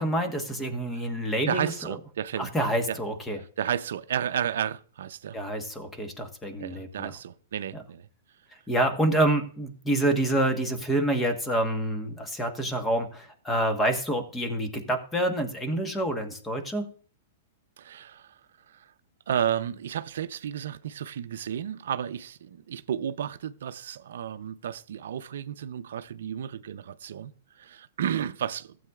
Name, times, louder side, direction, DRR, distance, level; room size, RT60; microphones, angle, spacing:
voice 1, 0.0-1.7 2.4-3.4 5.3-7.1 8.7-16.9, right 1 dB, 10° left, 1.2 m, -27 dB
voice 2, 1.5-2.5 2.9-3.0 3.4-5.4 6.6-8.1 17.8-18.4 18.7-18.9 19.3-28.8, right 9 dB, 75° right, 0.5 m, -32 dB
15.0 x 7.7 x 2.4 m
hypercardioid pair, 140°, 0 cm